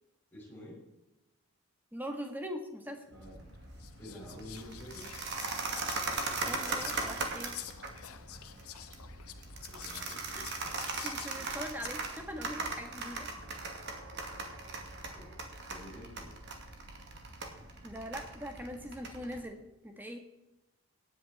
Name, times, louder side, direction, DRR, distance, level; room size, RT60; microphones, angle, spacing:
voice 1, 0.3-0.9 3.0-3.6 4.0-5.1 9.7-10.4 15.1-15.4 15.7-16.4, left 1 dB, 10° left, -5 dB, 5.6 m, -49 dB
voice 2, 1.9-3.1 6.1-7.6 10.3-10.4 11.0-13.3 17.8-20.2, equal, 10° right, 4 dB, 1.6 m, -42 dB
sound 1, 3.1-19.4, right 3 dB, 50° right, 2.2 m, -39 dB
Whispering, 3.2-3.3 3.8-11.9, left 11 dB, 80° left, 1.0 m, -48 dB
18.0 x 9.7 x 4.2 m, 0.94 s
head